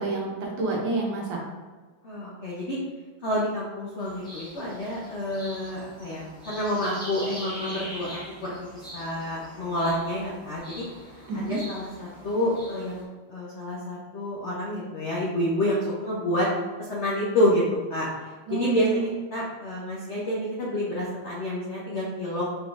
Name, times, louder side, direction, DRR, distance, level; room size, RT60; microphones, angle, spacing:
voice 1, 0.0-1.4 11.3-11.6 18.5-19.1, right 3 dB, 65° right, -2 dB, 1.5 m, -28 dB
voice 2, 2.0-2.8 3.2-10.9 11.3-16.5 16.8-18.1 18.5-22.4, left 1 dB, 85° left, -5 dB, 0.6 m, -28 dB
sound 1, 4.0-13.0, equal, 5° left, 1.0 m, -43 dB
4.9 x 3.9 x 2.5 m, 1.4 s
omnidirectional pair, 2.3 m